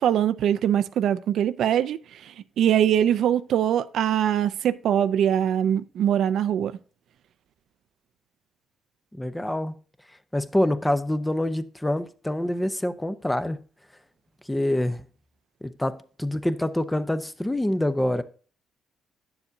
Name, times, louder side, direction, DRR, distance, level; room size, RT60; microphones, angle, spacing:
voice 1, 0.0-6.8, right 10 dB, 70° right, 0.4 m, -23 dB
voice 2, 9.1-9.8 10.3-13.6 14.5-15.0 15.6-18.2, left 1 dB, 10° left, 0.6 m, -26 dB
9.6 x 7.1 x 2.6 m
cardioid pair, 90°, 0 cm